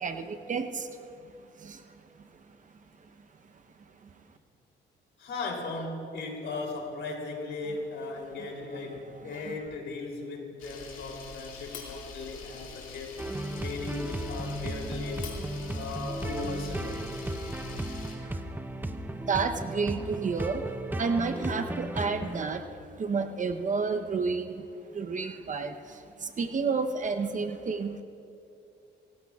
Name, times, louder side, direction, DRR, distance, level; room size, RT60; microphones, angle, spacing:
voice 1, 0.0-0.7 19.3-20.6 21.0-22.6 23.0-24.5 25.0-25.7 26.4-28.0, right 5 dB, 40° right, 7 dB, 0.8 m, -30 dB
voice 2, 5.2-13.2 13.5-15.4 15.7-16.9, left 3 dB, 65° left, 0 dB, 3.3 m, -37 dB
Camera, 10.6-18.1, left 4 dB, 85° left, 2.3 m, -43 dB
sound 1, 13.2-22.5, right 1 dB, 10° right, 0.7 m, -35 dB
26.0 x 15.0 x 2.4 m, 2.7 s
cardioid pair, 90°, 20 cm